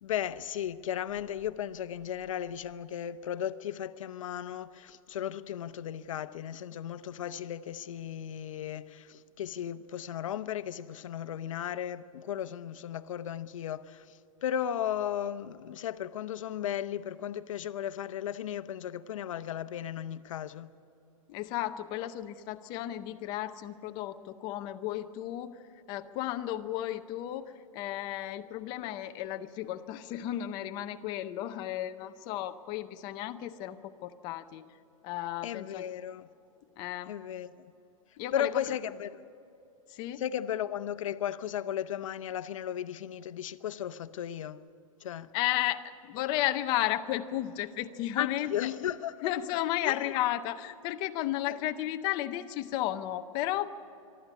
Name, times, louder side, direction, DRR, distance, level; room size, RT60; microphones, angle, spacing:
voice 1, 0.0-20.7 35.4-36.3 37.1-37.7 38.3-39.2 40.2-44.6 45.0-45.3 48.2-49.3 49.8-50.1 51.5-51.6, left 10 dB, 65° left, 0.8 m, -35 dB
voice 2, 21.3-25.6 25.9-34.6 35.0-35.8 36.8-37.1 38.2-38.8 39.9-40.2 45.3-48.7 49.2-53.7, left 13 dB, 25° left, 0.6 m, -33 dB
23.0 x 13.0 x 9.9 m
hypercardioid pair, 165°, 18 cm